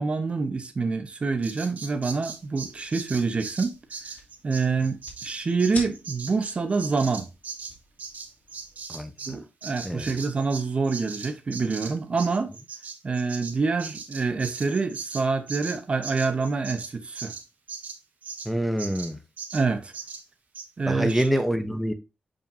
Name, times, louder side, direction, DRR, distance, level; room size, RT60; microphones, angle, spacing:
voice 1, 0.0-3.8 4.4-7.3 9.3-12.5 13.0-17.3 19.5-19.9 20.8-21.3, right 4 dB, 35° right, 0.8 m, -26 dB
Bird vocalization bird call bird song, 1.4-9.4 9.6-18.5 18.8-19.1 19.4-19.6 19.9-20.2 20.5-20.7, right 5 dB, 55° right, 1.5 m, -39 dB
sound 1, 2.1-8.8, left 2 dB, 55° left, 2.6 m, -47 dB
voice 2, 8.9-9.4 9.8-10.1 18.5-19.2 20.9-21.9, equal, ahead, 0.8 m, -26 dB
7.1 x 5.3 x 2.6 m
wide cardioid pair, 125°, 3 cm